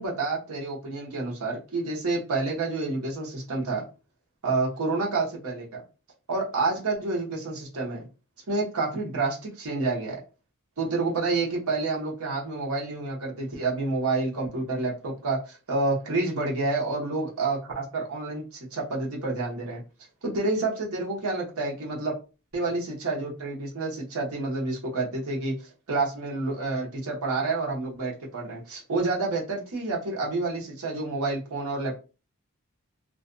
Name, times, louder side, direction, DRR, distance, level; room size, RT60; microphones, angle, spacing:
voice 1, 0.0-3.8 4.4-5.8 6.3-8.1 8.5-10.2 10.8-19.8 20.2-22.1 22.5-32.0, right 3 dB, 75° right, -3 dB, 0.9 m, -29 dB
2.4 x 2.2 x 2.5 m, 0.33 s
head